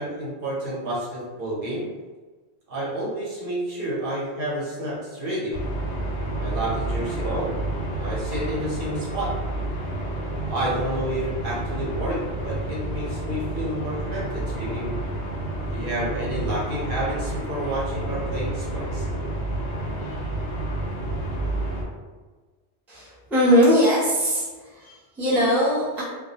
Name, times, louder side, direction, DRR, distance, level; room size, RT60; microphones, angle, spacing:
voice 1, 0.0-1.9 2.7-5.6 6.4-7.5 7.9-9.3 10.5-14.9 15.7-19.0, right 1 dB, 55° right, -7 dB, 0.8 m, -30 dB
sound 1, 5.5-21.8, right 1 dB, 85° left, 0.9 m, -29 dB
voice 2, 22.9-24.5 24.8-26.0, equal, ahead, -9 dB, 0.5 m, -20 dB
2.3 x 2.0 x 2.7 m, 1.4 s
omnidirectional pair, 1.1 m